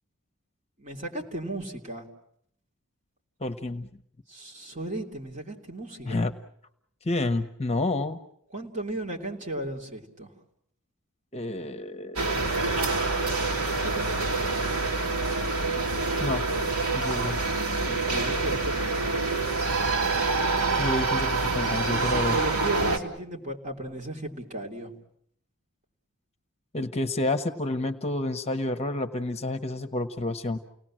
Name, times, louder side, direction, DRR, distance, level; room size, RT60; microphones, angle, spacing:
voice 1, 0.8-2.1 4.3-6.2 8.5-10.3 17.8-19.1 21.9-24.9, right 1 dB, 35° right, 1 dB, 3.3 m, -35 dB
voice 2, 3.4-3.9 6.1-6.3 7.0-8.2 11.3-12.6 16.2-16.4 16.9-17.4 20.8-22.4 26.7-30.6, left 2 dB, 30° left, 9 dB, 1.1 m, -29 dB
sound 1, 12.2-23.0, right 3 dB, 70° right, 2.8 m, -26 dB
30.0 x 19.0 x 7.6 m, 0.71 s
head